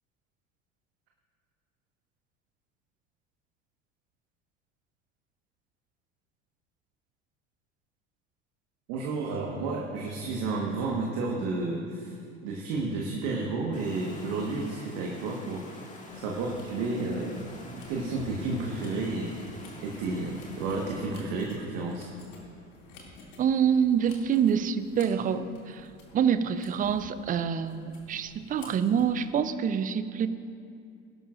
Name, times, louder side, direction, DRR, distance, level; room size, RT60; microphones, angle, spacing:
voice 1, 8.9-15.6 16.1-22.1, right 3 dB, 55° right, -2 dB, 1.5 m, -32 dB
Water, 13.7-21.1, left 2 dB, 20° left, 1.9 m, -48 dB
sound 1, 16.1-29.2, left 2 dB, 60° left, 2.6 m, -50 dB
voice 2, 23.4-25.9 26.1-30.3, right 7 dB, 20° right, 13 dB, 0.5 m, -26 dB
19.0 x 11.5 x 2.5 m, 2.4 s
figure-of-eight pair, 75°, 38 cm